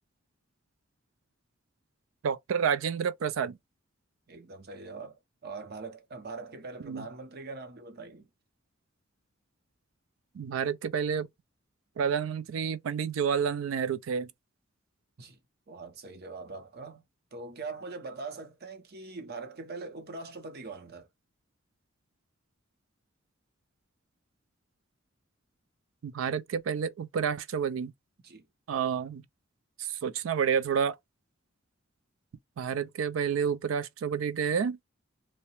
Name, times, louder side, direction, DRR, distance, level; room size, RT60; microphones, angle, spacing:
voice 1, 2.2-3.6 6.8-7.1 10.3-11.3 12.0-14.3 26.0-27.9 28.7-29.2 29.8-31.0 32.6-34.8, right 7 dB, 80° right, 0.4 m, -29 dB
voice 2, 4.3-8.3 15.2-15.4 15.7-17.0 17.3-21.1 28.2-28.4, right 3 dB, 55° right, 0.7 m, -42 dB
2.7 x 2.1 x 2.9 m
head